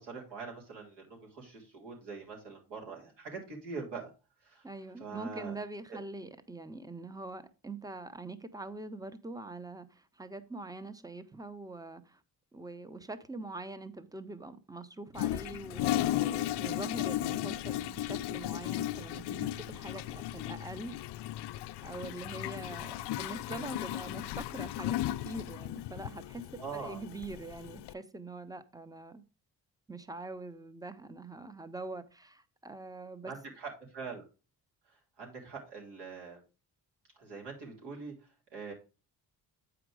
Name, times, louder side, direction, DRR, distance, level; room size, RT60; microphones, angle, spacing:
voice 1, 0.0-4.1 4.4-4.7 5.0-5.5 5.9-6.0 26.6-27.0 33.2-34.2 34.9-36.4 37.2-38.7, right 4 dB, 75° right, 3.8 m, -43 dB
voice 2, 4.6-12.2 12.5-21.0 21.8-25.0 25.2-29.2 29.9-33.3, right 2 dB, 10° right, 0.9 m, -44 dB
Toilet flush, 15.1-27.9, left 14 dB, 70° left, 0.5 m, -35 dB
8.3 x 5.0 x 4.8 m
cardioid pair, 85°, 42 cm